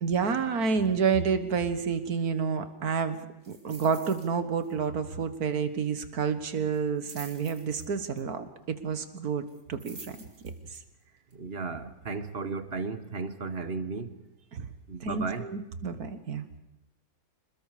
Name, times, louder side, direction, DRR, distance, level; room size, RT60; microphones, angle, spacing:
voice 1, 0.0-3.2 3.5-10.2 14.5-14.7 15.0-16.5, right 6 dB, 90° right, 1.9 m, -29 dB
sound 1, 3.4-4.3 4.6-4.8 5.1-5.2 6.7-8.2 9.5-10.8 11.3-11.4, right 2 dB, 70° right, 3.9 m, -48 dB
voice 2, 11.3-14.2 14.9-15.5, right 4 dB, 45° right, 1.3 m, -34 dB
27.0 x 20.5 x 5.0 m
omnidirectional pair, 1.5 m